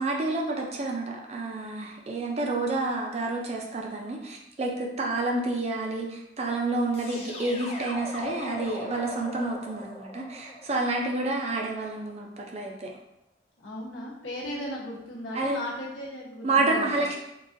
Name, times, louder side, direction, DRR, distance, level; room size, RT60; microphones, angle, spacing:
voice 1, 0.0-12.9 15.3-15.6 16.4-17.2, right 2 dB, 35° right, 0 dB, 0.4 m, -29 dB
sound 1, 6.9-11.9, left 1 dB, 30° left, 0.4 m, -40 dB
voice 2, 13.6-16.9, left 1 dB, 85° left, -4 dB, 1.0 m, -36 dB
3.8 x 2.6 x 2.5 m, 0.86 s
head